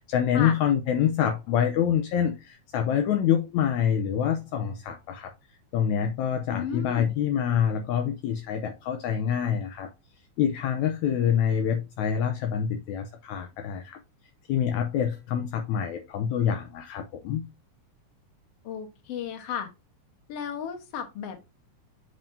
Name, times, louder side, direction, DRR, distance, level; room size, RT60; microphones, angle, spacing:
voice 1, 0.0-5.3 5.7-9.9 10.4-14.0 14.5-17.5, left 8 dB, 75° left, 1.9 m, -26 dB
voice 2, 6.5-7.1 18.6-19.7 20.3-21.4, left 8 dB, 55° left, 2.0 m, -34 dB
7.5 x 5.3 x 2.7 m
omnidirectional pair, 3.7 m